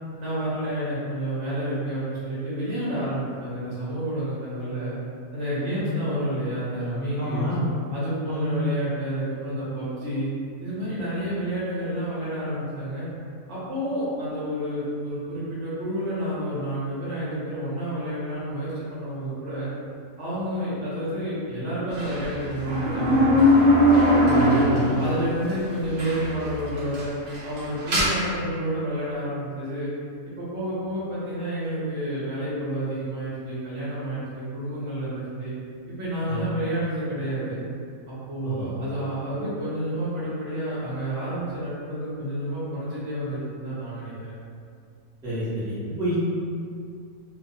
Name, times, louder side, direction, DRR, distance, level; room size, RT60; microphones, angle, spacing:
voice 1, 0.2-4.9 5.3-7.5 7.9-10.3 10.6-13.1 13.5-19.7 20.2-23.8 24.2-27.1 27.4-29.9 30.4-35.5 36.0-37.6 38.1-44.3, right 1 dB, 60° right, -10 dB, 0.9 m, -30 dB
voice 2, 7.2-7.6 8.2-8.6 24.3-25.0 36.3-36.5 38.4-38.7 45.2-46.2, right 1 dB, 5° right, -13 dB, 0.4 m, -28 dB
sound 1, 22.0-25.2 25.5-25.6 26.0-26.5 26.8-28.1, left 1 dB, 85° right, 0.4 m, -20 dB
2.5 x 2.1 x 2.6 m, 2.3 s
omnidirectional pair, 1.6 m